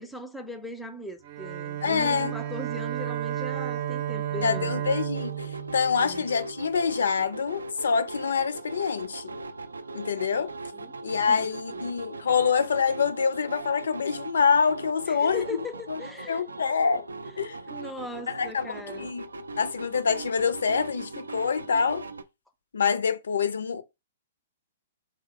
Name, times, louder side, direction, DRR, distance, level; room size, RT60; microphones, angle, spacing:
voice 1, 0.0-4.9 5.9-6.3 10.3-10.9 11.3-11.9 15.1-16.4 17.2-19.1, left 1 dB, 5° left, 0.6 m, -40 dB
Bowed string instrument, 1.2-6.7, right 11 dB, 45° right, 0.6 m, -32 dB
voice 2, 1.8-2.3 4.4-9.4 9.9-10.5 11.0-15.4 15.9-16.0 16.3-17.1 17.4-17.6 18.3-19.2 19.6-22.0 22.7-23.8, left 6 dB, 70° left, 0.4 m, -26 dB
sound 1, 5.1-22.2, right 3 dB, 80° right, 0.4 m, -40 dB
3.7 x 2.1 x 4.1 m
figure-of-eight pair, 115°, 0 cm